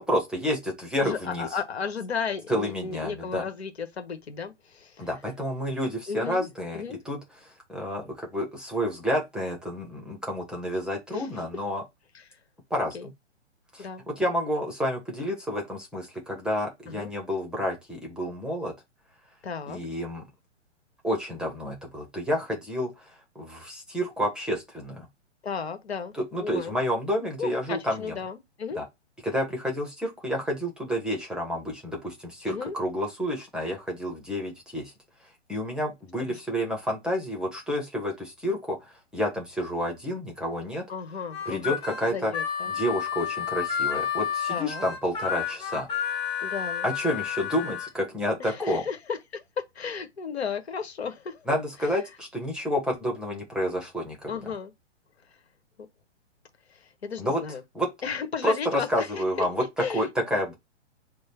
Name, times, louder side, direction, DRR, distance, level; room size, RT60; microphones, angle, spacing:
voice 1, 0.1-1.5 2.5-3.4 5.0-7.2 7.7-11.8 12.7-13.0 13.7-18.7 19.7-20.2 21.0-23.1 23.3-25.1 26.2-28.2 28.7-28.8 29.2-34.9 35.5-40.8 41.5-42.3 42.7-45.9 46.8-48.8 51.5-54.3 57.2-57.4 57.7-57.9 58.4-59.6 59.9-60.5, equal, ahead, 1.2 m, -29 dB
voice 2, 1.0-5.1 6.1-6.5 6.7-7.0 11.1-11.3 12.1-12.2 12.9-13.1 13.8-14.0 16.9-17.1 19.4-19.8 25.4-26.1 26.4-26.8 27.4-28.8 32.4-32.7 36.2-36.4 40.9-41.8 42.1-42.7 44.5-44.8 46.4-46.9 48.4-49.4 49.7-51.5 54.3-54.7 56.7-57.6 58.0-59.5 59.8-60.1, left 6 dB, 60° left, 1.4 m, -34 dB
Harmonica, 41.3-47.9, left 8 dB, 15° left, 1.9 m, -31 dB
4.8 x 2.4 x 4.3 m
figure-of-eight pair, 120°, 36 cm